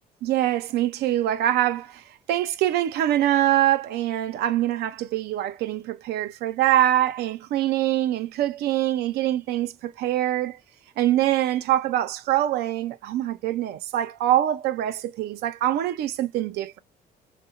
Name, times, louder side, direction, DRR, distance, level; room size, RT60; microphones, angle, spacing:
voice 1, 0.2-10.6 11.0-16.8, right 13 dB, 75° right, 0.4 m, -24 dB
2.8 x 2.1 x 2.4 m
cardioid pair, 110°, 17 cm